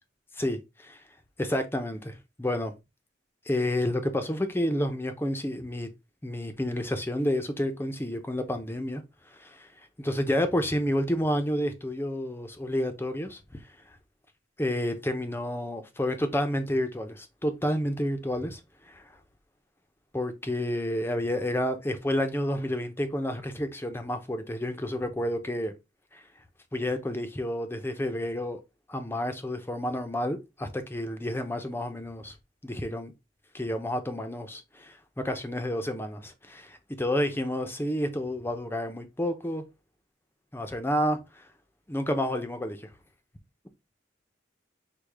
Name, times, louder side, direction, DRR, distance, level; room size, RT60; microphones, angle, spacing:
voice 1, 0.3-1.0 1.4-2.7 3.5-5.9 6.2-9.7 10.0-13.6 14.6-18.6 20.1-25.7 26.1-26.2 26.7-28.6 28.9-32.3 32.6-33.1 33.5-39.6 40.5-41.4 41.9-42.9, left 1 dB, 10° left, 0.6 m, -30 dB
6.4 x 2.3 x 3.4 m
head